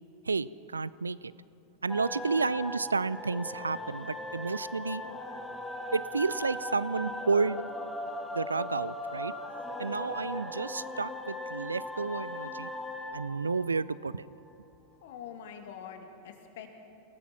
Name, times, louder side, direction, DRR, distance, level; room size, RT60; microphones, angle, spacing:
voice 1, 0.3-1.3 1.8-5.0 5.9-7.6 8.3-9.3 9.8-12.7 13.1-14.3, right 4 dB, 75° right, 20 dB, 0.4 m, -31 dB
sound 1, 1.9-14.5, left 1 dB, 5° left, 1.9 m, -39 dB
voice 2, 15.0-16.7, left 8 dB, 55° left, 5 dB, 2.3 m, -45 dB
27.5 x 18.0 x 5.9 m, 2.8 s
figure-of-eight pair, 90°, 0 cm